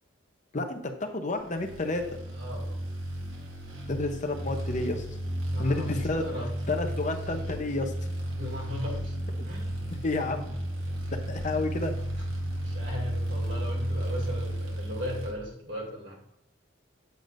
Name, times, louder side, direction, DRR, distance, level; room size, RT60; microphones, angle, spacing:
voice 1, 0.5-2.2 3.9-5.0 5.6-6.2 6.7-7.9 10.0-10.5 11.3-11.9, left 2 dB, 40° left, 5 dB, 0.8 m, -30 dB
sound 1, 1.5-15.3, right 1 dB, 90° right, 1.6 m, -33 dB
voice 2, 2.3-2.8 5.5-6.5 8.4-9.2 9.4-9.8 12.6-16.2, left 1 dB, 65° right, -1 dB, 2.7 m, -37 dB
7.8 x 7.0 x 2.6 m, 0.77 s
head